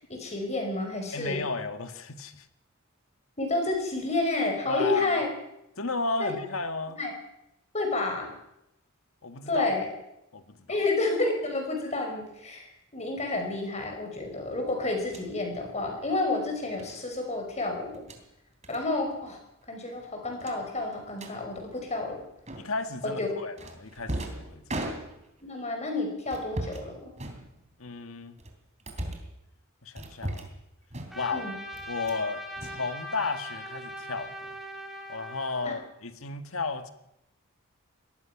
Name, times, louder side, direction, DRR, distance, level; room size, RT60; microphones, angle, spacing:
voice 1, 0.1-1.5 3.4-5.3 6.2-6.3 6.9-7.1 7.7-8.4 9.5-9.9 10.7-18.0 18.7-19.4 19.7-22.2 23.0-23.3 25.4-27.1 31.3-31.6 35.6-35.7, left 2 dB, 35° left, 3 dB, 5.4 m, -30 dB
voice 2, 1.1-2.5 4.7-5.2 5.8-7.0 9.2-9.7 10.3-10.8 22.6-24.9 27.8-28.4 29.8-30.5 31.1-31.5 31.9-34.6 35.1-36.9, left 3 dB, 75° left, 9 dB, 1.7 m, -33 dB
sound 1, 15.0-15.3 16.8-17.0 17.9-18.2 18.6-18.8 19.1-19.3 19.6-19.7 20.4-21.4 22.5-22.9 23.6-25.4 26.3-26.9 27.2-27.9 28.4-29.3 30.0-30.6 30.9-31.4 31.7-32.3 32.6-33.4, right 1 dB, 35° right, 3.3 m, -38 dB
Trumpet, 31.1-35.8, equal, ahead, 3.6 m, -40 dB
23.5 x 19.0 x 6.0 m, 0.85 s
head